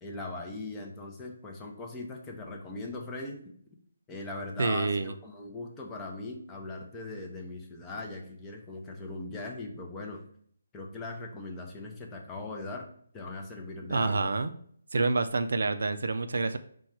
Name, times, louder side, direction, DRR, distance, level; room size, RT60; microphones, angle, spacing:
voice 1, 0.0-3.4 4.1-10.2 10.7-12.9 13.1-14.3, left 2 dB, 15° left, 1 dB, 0.5 m, -40 dB
voice 2, 4.6-5.1 13.9-14.5 14.9-16.6, right 3 dB, 75° right, 9 dB, 0.3 m, -27 dB
4.6 x 2.2 x 4.3 m, 0.62 s
hypercardioid pair, 160°, 0 cm